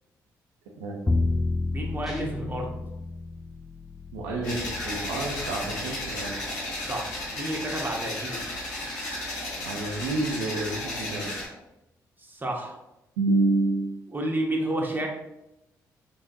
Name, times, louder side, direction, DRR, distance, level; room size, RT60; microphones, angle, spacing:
Bowed string instrument, 1.1-7.2, left 3 dB, 15° left, 0.3 m, -32 dB
voice 1, 1.7-2.7 6.8-8.5 12.2-12.8 14.1-15.1, right 1 dB, 20° right, -1 dB, 1.1 m, -31 dB
Guitar, 2.0-2.8, right 2 dB, ahead, 1.3 m, -37 dB
voice 2, 4.1-6.4 9.6-11.3 13.2-13.9, right 2 dB, 85° right, -1 dB, 0.6 m, -28 dB
sound 1, 4.4-11.4, left 1 dB, 85° left, 1.4 m, -34 dB
4.0 x 3.6 x 2.6 m, 0.93 s
hypercardioid pair, 45°, 9 cm